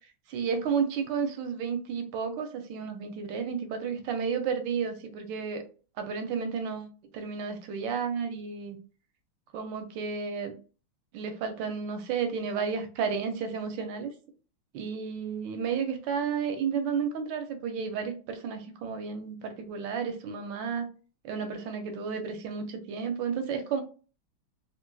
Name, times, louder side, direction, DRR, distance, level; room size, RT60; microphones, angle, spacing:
voice 1, 0.3-5.6 6.0-6.9 7.1-8.8 9.5-10.6 11.1-14.1 14.7-20.9 21.2-23.8, right 6 dB, 75° right, 1.2 m, -32 dB
3.8 x 2.4 x 2.3 m
omnidirectional pair, 2.3 m